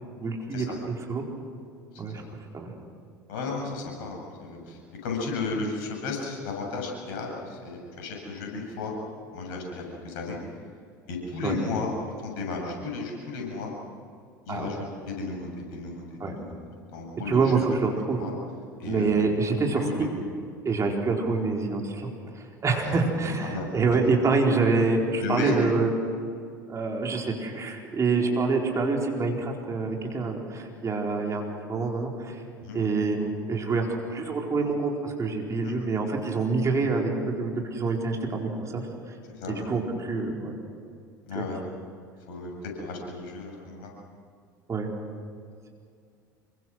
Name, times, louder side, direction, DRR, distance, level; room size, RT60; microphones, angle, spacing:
voice 1, 0.2-0.7 1.1-1.2 2.0-2.2 2.5-2.7 11.4-11.6 14.5-14.7 16.2-16.3 17.3-18.2 18.8-20.2 20.6-22.1 22.3-25.9 26.7-32.4 32.7-39.1 39.5-40.5 41.3-41.4 44.7-44.9, right 4 dB, 30° right, 0 dB, 4.3 m, -26 dB
voice 2, 3.3-8.9 9.3-10.4 11.1-11.9 12.2-13.7 14.5-16.5 16.9-17.4 18.2-18.3 18.8-19.2 19.8-20.1 22.8-23.0 23.4-23.7 25.2-25.6 32.6-32.8 35.6-35.7 39.3-39.5 41.3-41.6 42.3-42.5 42.8-43.9, left 4 dB, 60° left, 1 dB, 7.6 m, -34 dB
27.5 x 23.5 x 6.3 m, 2.3 s
figure-of-eight pair, 70°, 11 cm